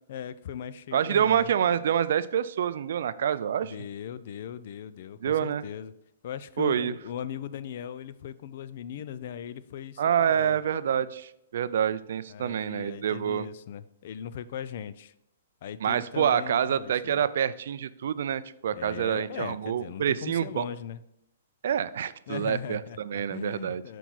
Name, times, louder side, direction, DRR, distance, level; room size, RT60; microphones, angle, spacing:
voice 1, 0.1-1.5 3.6-5.9 6.2-10.6 12.3-15.1 15.6-17.3 18.7-21.0 22.3-24.0, left 9 dB, 55° left, 15 dB, 0.4 m, -39 dB
voice 2, 0.9-3.7 5.2-5.6 6.6-6.9 10.0-13.5 15.8-20.6 21.6-23.8, right 9 dB, 65° right, 15 dB, 0.3 m, -27 dB
6.1 x 4.5 x 4.0 m, 0.81 s
hypercardioid pair, 145°, 0 cm